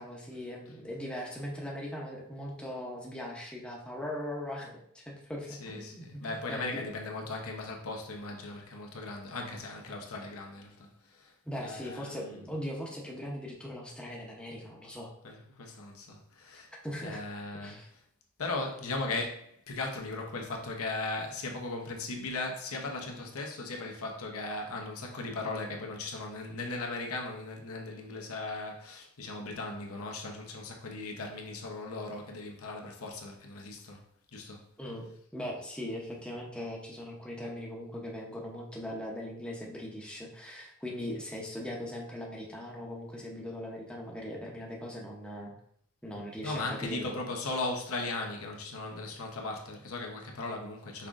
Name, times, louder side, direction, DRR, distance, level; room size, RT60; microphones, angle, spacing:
voice 1, 0.0-6.8 11.4-15.1 16.8-17.2 17.6-17.9 34.8-35.1 35.3-45.5 46.0-47.1, left 1 dB, 5° left, 0.7 m, -40 dB
voice 2, 5.5-12.4 15.2-16.7 17.0-17.8 18.4-34.0 34.3-34.7 46.4-51.1, left 2 dB, 75° left, 0.9 m, -38 dB
5.6 x 3.6 x 2.5 m
head